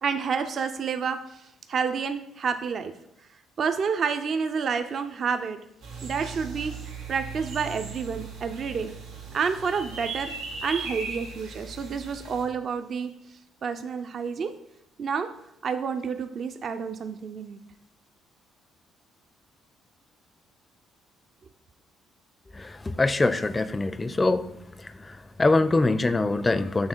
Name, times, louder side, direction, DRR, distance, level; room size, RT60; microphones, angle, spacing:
voice 1, 0.0-2.9 3.6-5.6 6.0-8.9 9.3-10.3 10.6-13.1 13.6-14.5 15.0-15.3 15.6-17.6, right 6 dB, 55° right, 8 dB, 0.4 m, -29 dB
sound 1, 5.8-12.4, right 4 dB, 85° right, 1.6 m, -38 dB
voice 2, 22.5-24.5 24.8-26.9, left 2 dB, 25° left, 14 dB, 0.4 m, -24 dB
6.5 x 3.4 x 4.5 m, 0.79 s
supercardioid pair, 60°, 0 cm